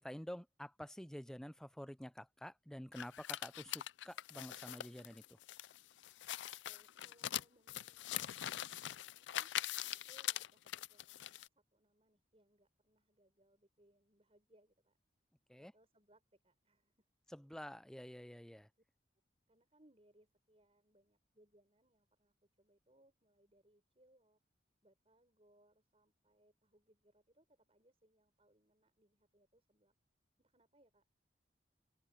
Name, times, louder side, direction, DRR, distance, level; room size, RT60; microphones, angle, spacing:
voice 1, 0.0-5.4 15.5-15.7 17.3-18.7, equal, 5° left, 0.5 m, -49 dB
sound 1, 2.9-11.5, left 13 dB, 85° left, 0.4 m, -43 dB
voice 2, 6.4-9.5 9.9-11.4 11.7-15.0 15.6-17.1 19.5-24.4 24.8-29.9 30.4-31.2, right 1 dB, 35° right, 6.0 m, -72 dB
open air
head